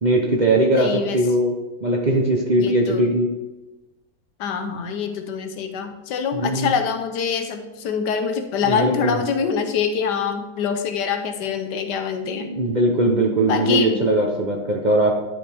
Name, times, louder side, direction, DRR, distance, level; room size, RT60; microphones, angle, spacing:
voice 1, 0.0-3.3 6.3-6.7 8.7-9.2 12.3-15.1, right 1 dB, 35° right, 0 dB, 0.8 m, -20 dB
voice 2, 0.7-1.2 2.6-3.1 4.4-12.5 13.4-14.1, left 6 dB, 90° left, 7 dB, 1.4 m, -25 dB
11.0 x 5.0 x 3.5 m, 1.1 s
omnidirectional pair, 1.8 m